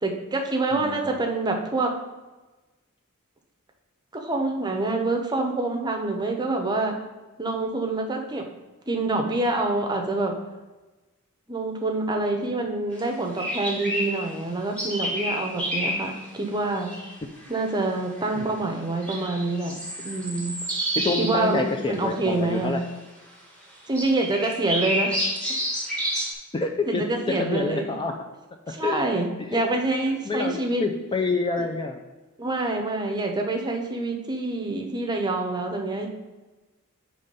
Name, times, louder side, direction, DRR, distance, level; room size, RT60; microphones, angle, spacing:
voice 1, 0.0-1.9 4.1-6.9 7.4-8.5 8.9-10.3 11.5-16.9 17.5-20.6 21.2-22.8 23.9-25.2 26.9-28.0 28.7-30.8 31.6-31.7 32.4-36.1, right 2 dB, 20° right, 2 dB, 0.7 m, -26 dB
voice 2, 0.7-1.2 18.4-18.5 21.0-22.8 26.5-28.1 28.8-29.2 29.5-29.6 30.3-32.0, left 3 dB, 20° left, 4 dB, 0.4 m, -27 dB
sound 1, 13.0-13.1 13.4-14.3 14.8-16.1 16.8-17.1 17.4-17.8 18.2-18.5 19.0-21.5 21.8-21.9 22.8-22.9 23.9-26.3, equal, 5° left, 1.3 m, -29 dB
6.8 x 3.2 x 5.3 m, 1.2 s
head